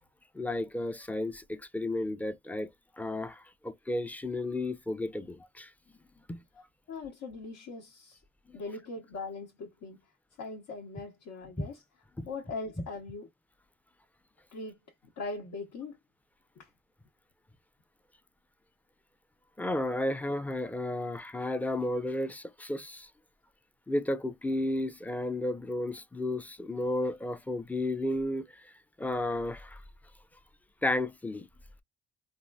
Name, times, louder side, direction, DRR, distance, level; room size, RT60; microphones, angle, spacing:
voice 1, 0.3-2.7 3.0-5.7 6.3-6.4 8.5-8.6 11.6-11.7 12.2-12.3 19.6-23.1 23.9-28.5 29.0-29.8 30.8-31.5, left 1 dB, 5° left, 0.4 m, -33 dB
voice 2, 6.9-8.2 8.5-10.0 10.4-11.8 12.3-13.3 14.5-14.8 15.2-16.0 16.6-16.7, left 3 dB, 70° left, 0.9 m, -40 dB
3.5 x 2.4 x 2.2 m
cardioid pair, 90°, 30 cm